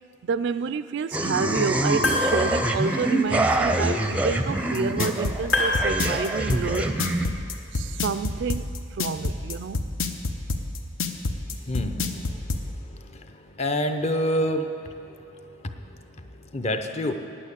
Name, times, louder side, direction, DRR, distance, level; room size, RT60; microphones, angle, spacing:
voice 1, 0.2-7.0 7.7-9.8, right 5 dB, 60° right, 13 dB, 0.3 m, -29 dB
sound 1, 1.1-7.3, right 1 dB, 5° right, 0.5 m, -25 dB
sound 2, 1.8-2.8 5.5-6.6, left 1 dB, 65° left, 2.2 m, -26 dB
sound 3, 4.7-12.6, left 3 dB, 80° left, 0.8 m, -27 dB
voice 2, 11.7-12.2 13.6-14.7 16.5-17.2, equal, 35° left, 6 dB, 0.6 m, -26 dB
9.6 x 8.8 x 8.4 m, 2.8 s
head